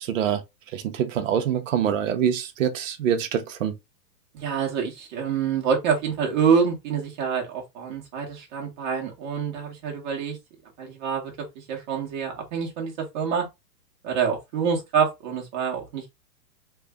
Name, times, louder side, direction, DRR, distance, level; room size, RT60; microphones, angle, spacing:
voice 1, 0.0-0.4 0.7-3.7, right 9 dB, 50° right, 0.7 m, -25 dB
voice 2, 4.3-10.4 10.8-13.5 14.0-16.1, right 6 dB, 30° right, 1.0 m, -26 dB
3.2 x 2.1 x 3.4 m
hypercardioid pair, 155°, 50 cm